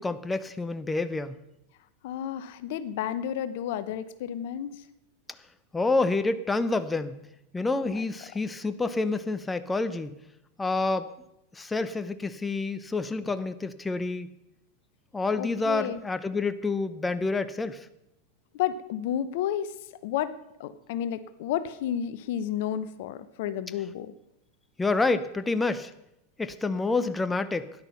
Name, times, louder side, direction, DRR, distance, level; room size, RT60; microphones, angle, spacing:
voice 1, 0.0-1.4 5.7-7.2 7.5-10.1 10.6-11.1 11.5-14.3 15.1-17.9 24.8-25.9 26.4-27.7, left 3 dB, 15° left, 12 dB, 0.8 m, -28 dB
voice 2, 2.0-4.8 7.8-8.0 15.4-16.0 18.5-19.7 20.0-24.1, left 10 dB, 65° left, 14 dB, 0.8 m, -31 dB
13.0 x 10.5 x 5.8 m, 0.84 s
hypercardioid pair, 100°, 0 cm